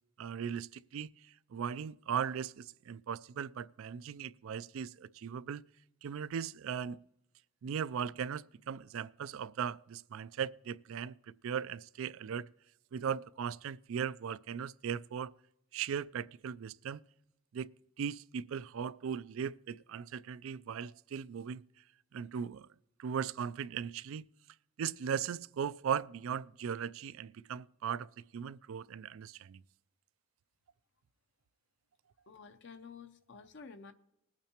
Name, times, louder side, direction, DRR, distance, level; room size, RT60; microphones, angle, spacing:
voice 1, 0.2-1.1 1.5-5.6 6.0-7.0 7.6-11.1 11.4-12.5 12.9-15.3 15.7-17.0 17.5-17.7 18.0-21.6 22.1-22.7 23.0-24.2 24.8-29.6, right 7 dB, 65° right, 0.3 m, -38 dB
voice 2, 32.3-33.9, left 5 dB, 55° left, 0.6 m, -51 dB
20.5 x 8.8 x 2.9 m
head